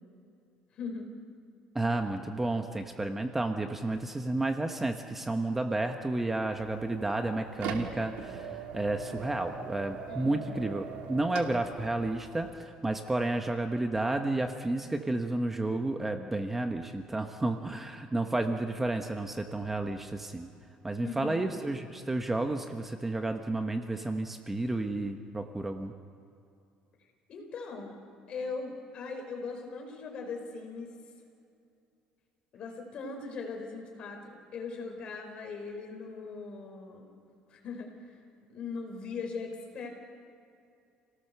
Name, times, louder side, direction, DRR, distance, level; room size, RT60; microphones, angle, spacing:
voice 1, 0.7-1.1 10.1-10.6 21.0-21.5 27.3-28.0 28.3-30.9 32.5-37.1 37.5-38.2 38.5-39.9, left 4 dB, 45° left, 3 dB, 4.6 m, -40 dB
voice 2, 1.7-20.5 20.8-25.9, right 2 dB, 10° right, 5 dB, 1.0 m, -31 dB
sound 1, 6.5-12.5, right 6 dB, 85° right, 2.3 m, -42 dB
29.0 x 18.0 x 6.8 m, 2.6 s
cardioid pair, 145°, 2 cm